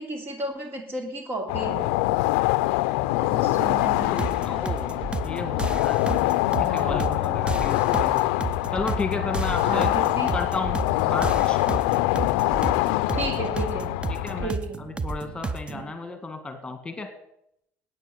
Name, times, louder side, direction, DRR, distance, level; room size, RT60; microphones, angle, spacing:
voice 1, 0.0-1.9 3.2-4.4 6.6-7.1 9.6-10.3 13.1-13.9 14.4-14.8 15.7-16.2, right 2 dB, 40° right, 5 dB, 2.9 m, -33 dB
sound 1, 1.5-14.5, left 19 dB, 90° left, 0.4 m, -24 dB
sound 2, 4.2-15.8, right 3 dB, 20° right, 0.8 m, -32 dB
voice 2, 4.4-4.9 5.2-6.0 6.6-8.2 8.7-9.9 10.3-11.6 14.1-17.1, left 3 dB, 15° left, 7 dB, 2.0 m, -33 dB
9.3 x 9.2 x 10.0 m, 0.76 s
supercardioid pair, 100°, 5 cm